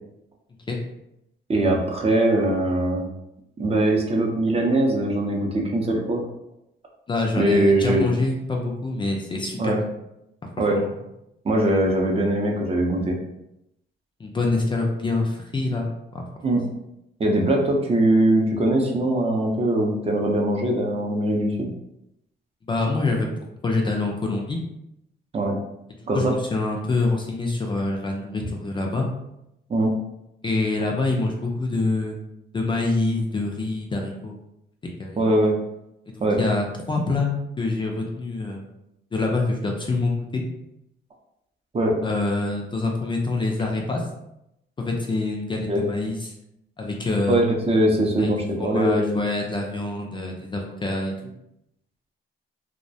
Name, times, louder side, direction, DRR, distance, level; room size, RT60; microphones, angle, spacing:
voice 1, 1.5-3.1 3.6-6.2 7.4-8.1 9.6-9.8 10.6-10.8 11.4-13.2 16.4-16.6 17.2-21.7 25.3-25.6 26.1-26.4 28.4-28.5 29.7-29.9 35.2-35.6 36.2-36.4 41.7-42.0 45.7-45.9 47.3-49.3, right 1 dB, 30° right, 0 dB, 0.5 m, -21 dB
voice 2, 7.1-9.9 10.7-10.9 11.7-11.9 14.2-16.2 22.7-23.3 23.6-24.6 26.1-29.1 30.4-32.2 32.5-34.3 34.8-35.2 36.4-38.7 39.1-40.4 42.0-44.0 44.8-46.3 46.8-47.4 48.2-48.3 48.6-51.3, left 3 dB, 25° left, 0 dB, 0.4 m, -26 dB
2.3 x 2.1 x 2.6 m, 0.83 s
cardioid pair, 90°, 20 cm